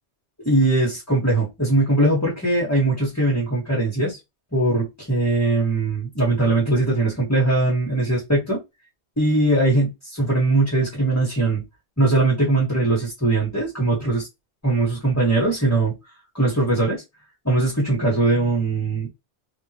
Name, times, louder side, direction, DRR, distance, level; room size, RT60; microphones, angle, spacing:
voice 1, 0.4-4.2 4.5-8.6 9.2-11.6 12.0-14.3 14.6-16.0 16.3-17.0 17.4-19.1, right 2 dB, 15° left, 1.3 m, -20 dB
3.6 x 2.7 x 2.8 m
omnidirectional pair, 1.2 m